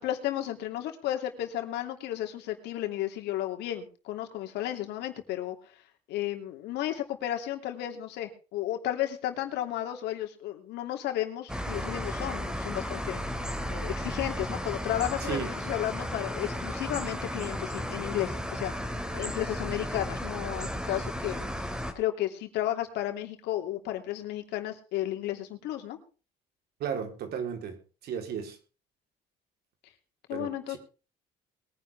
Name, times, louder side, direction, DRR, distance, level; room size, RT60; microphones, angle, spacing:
voice 1, 0.0-5.6 6.1-13.2 13.7-18.9 19.1-21.5 21.9-26.0 30.3-30.8, left 13 dB, 85° left, 3.0 m, -33 dB
sound 1, 11.5-21.9, equal, 5° right, 2.9 m, -34 dB
voice 2, 15.2-15.5 26.8-27.8 28.0-28.6 30.3-30.8, right 7 dB, 70° right, 4.0 m, -34 dB
22.0 x 10.5 x 3.6 m
cardioid pair, 110°, 17 cm